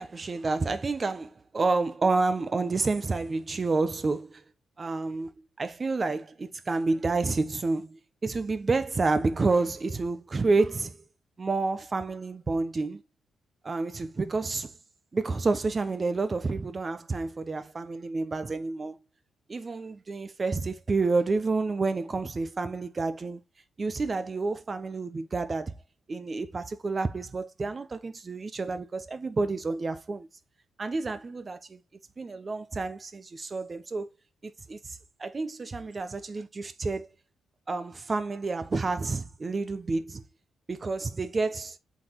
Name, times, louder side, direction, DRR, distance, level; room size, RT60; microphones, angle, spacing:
voice 1, 0.0-4.4 4.8-5.3 5.6-11.0 11.4-13.0 13.6-14.7 15.1-19.0 19.5-23.4 23.8-25.7 26.1-30.3 30.8-31.8 32.2-34.1 34.4-34.8 35.2-37.1 37.7-40.2 40.7-41.8, right 3 dB, 30° right, 0.9 m, -29 dB
7.8 x 4.1 x 3.1 m
cardioid pair, 105°, 0 cm